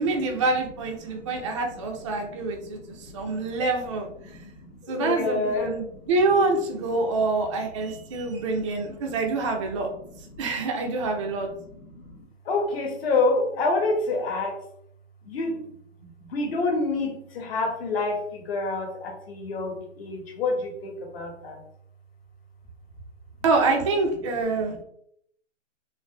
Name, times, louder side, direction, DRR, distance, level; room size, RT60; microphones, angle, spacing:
voice 1, 0.0-4.1 4.9-9.9 10.4-11.5 23.4-24.7, right 3 dB, 25° right, 1 dB, 0.4 m, -26 dB
voice 2, 1.0-1.6 2.0-3.6 4.2-6.1 7.0-7.1 7.8-9.1 9.6-9.7 9.9-10.6 11.2-14.6 15.2-15.7 16.0-21.6 24.6-24.8, left 3 dB, 50° left, 0 dB, 1.0 m, -29 dB
3.2 x 2.5 x 2.8 m, 0.69 s
hypercardioid pair, 140°, 38 cm